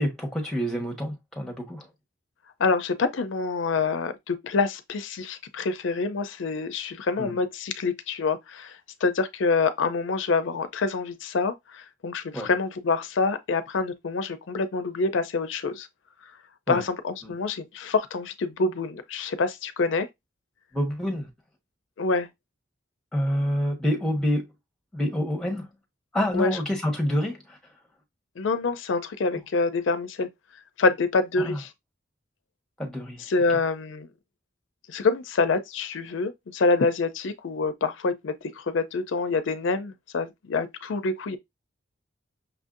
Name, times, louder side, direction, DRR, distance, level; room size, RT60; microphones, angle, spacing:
voice 1, 0.0-1.9 7.2-7.4 12.3-12.5 16.7-16.8 17.2-17.3 20.7-21.3 23.1-24.4 24.9-25.7 26.1-27.6 31.4-31.6 32.8-33.2 33.5-33.6, equal, 5° left, 1.1 m, -27 dB
voice 2, 2.6-15.9 16.7-20.1 22.0-22.3 26.3-26.6 28.4-30.3 30.8-31.7 33.3-34.1 34.9-41.4, left 4 dB, 75° left, 0.4 m, -26 dB
5.9 x 2.6 x 2.4 m
head